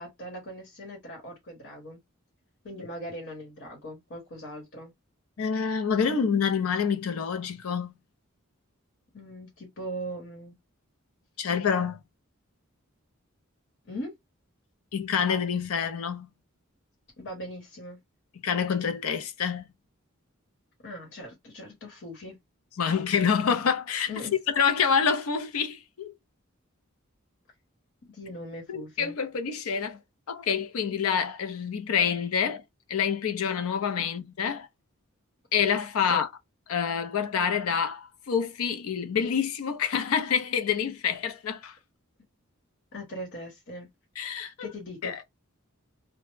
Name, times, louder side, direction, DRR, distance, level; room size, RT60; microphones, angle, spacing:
voice 1, 0.0-2.0 2.6-4.9 9.1-10.6 13.8-14.1 17.2-18.0 20.8-22.4 24.1-24.3 28.1-29.2 36.1-36.2 42.9-43.9 44.6-45.1, equal, 60° left, 1.1 m, -40 dB
voice 2, 5.4-7.9 11.4-12.0 14.9-16.3 18.4-19.7 22.8-24.1 24.5-26.1 28.7-30.0 30.3-32.6 32.9-34.7 35.5-36.3 36.7-41.8 44.2-44.7 45.0-45.2, left 6 dB, 80° left, 0.5 m, -27 dB
2.1 x 2.0 x 3.1 m
head